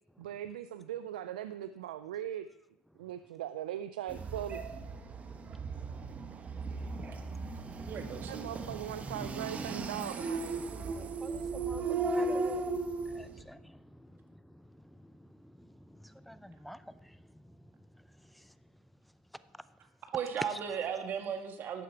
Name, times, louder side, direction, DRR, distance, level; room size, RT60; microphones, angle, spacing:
voice 1, 0.2-2.5 3.0-4.6 8.3-10.6, right 11 dB, 90° right, 0.4 m, -40 dB
sound 1, 4.1-13.4, right 3 dB, 35° right, 1.3 m, -36 dB
voice 2, 7.9-8.5 20.1-21.8, right 7 dB, 50° right, 1.7 m, -36 dB
voice 3, 11.2-11.8 12.1-12.6 13.1-13.6 16.3-16.8, equal, ahead, 0.6 m, -46 dB
12.0 x 8.3 x 4.6 m
hypercardioid pair, 80°, 4 cm